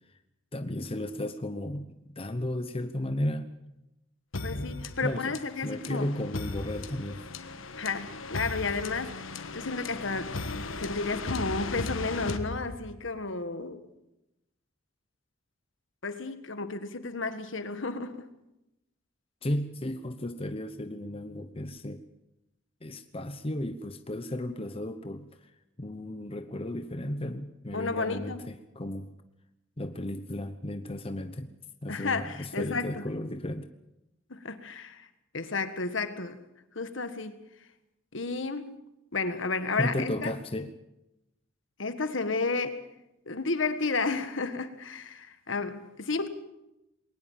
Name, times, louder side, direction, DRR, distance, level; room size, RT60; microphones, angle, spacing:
voice 1, 0.5-3.5 4.4-5.4 5.6-7.2 19.4-22.0 22.8-25.5 25.8-29.1 29.8-31.5 31.8-33.7 39.8-40.7, left 1 dB, 30° left, 9 dB, 0.9 m, -34 dB
sound 1, 4.3-13.2, left 3 dB, 90° left, 1.5 m, -37 dB
voice 2, 4.4-6.1 7.8-9.1 9.5-10.3 10.8-13.8 16.0-18.3 27.7-28.5 31.9-33.0 34.3-35.1 35.3-36.4 36.8-37.4 38.1-38.7 39.1-40.3 41.8-42.8 43.3-46.3, left 3 dB, 70° left, 10 dB, 1.7 m, -32 dB
21.5 x 19.0 x 7.4 m, 0.91 s
head